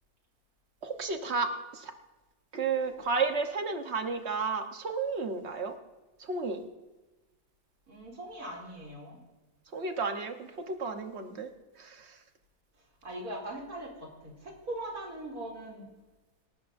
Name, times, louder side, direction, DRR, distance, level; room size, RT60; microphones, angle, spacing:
voice 1, 0.8-1.9 2.5-5.7 6.2-6.6 9.7-10.4 10.7-11.5 11.8-12.1, right 4 dB, 45° right, 6 dB, 1.3 m, -32 dB
voice 2, 7.9-9.2 13.0-15.8, right 1 dB, 65° right, -2 dB, 3.4 m, -40 dB
27.5 x 13.0 x 2.6 m, 1.1 s
omnidirectional pair, 1.6 m